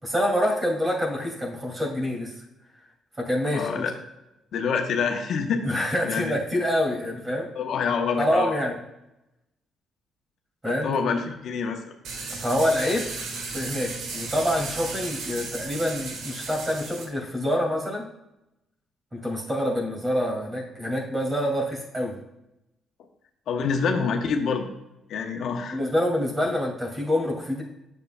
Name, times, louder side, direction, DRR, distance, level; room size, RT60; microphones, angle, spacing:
voice 1, 0.0-2.3 3.2-3.9 5.6-7.5 8.2-8.8 10.6-10.9 12.3-13.1 13.5-18.1 19.1-22.2 25.7-27.6, equal, 20° right, 0 dB, 2.4 m, -26 dB
voice 2, 3.5-3.9 4.5-5.7 6.0-6.3 7.6-8.6 10.6-11.9 23.5-24.6 25.1-25.8, left 5 dB, 70° left, 4 dB, 0.9 m, -26 dB
sound 1, 12.0-17.0, right 4 dB, 80° right, 1.5 m, -35 dB
9.5 x 6.8 x 2.3 m, 0.91 s
cardioid pair, 90°, 0 cm